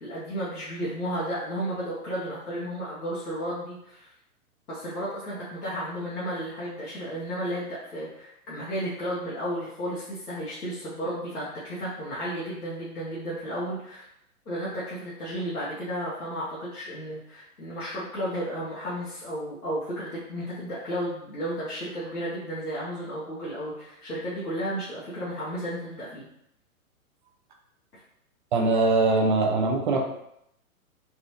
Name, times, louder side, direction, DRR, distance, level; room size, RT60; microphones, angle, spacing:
voice 1, 0.0-4.1 4.7-14.1 14.4-26.3, equal, 85° left, -9 dB, 1.4 m, -33 dB
voice 2, 28.5-30.1, right 3 dB, 35° right, 2 dB, 0.4 m, -22 dB
4.0 x 2.6 x 3.0 m, 0.76 s
hypercardioid pair, 125°, 44 cm